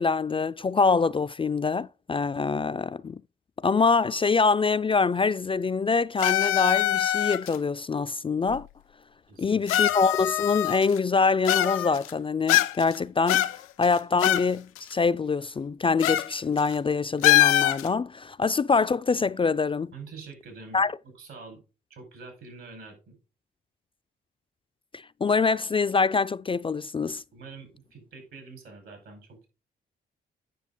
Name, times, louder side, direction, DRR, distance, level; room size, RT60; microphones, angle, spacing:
voice 1, 0.0-3.2 3.6-8.7 9.4-13.5 13.8-19.9 20.7-20.9 24.9-27.2, left 4 dB, 25° left, 0.4 m, -25 dB
sound 1, 6.2-7.6 8.5-8.6 9.7-11.0 11.4-12.1 12.5-13.0 13.3-14.5 14.8-14.9 16.0-16.3 16.6-16.7 17.2-17.9, left 13 dB, 85° left, 0.5 m, -23 dB
voice 2, 9.3-9.6 19.9-20.8 21.1-21.6 21.9-23.2 27.3-29.5, right 4 dB, 75° right, 4.9 m, -45 dB
9.2 x 5.9 x 3.8 m
supercardioid pair, 55°, 21 cm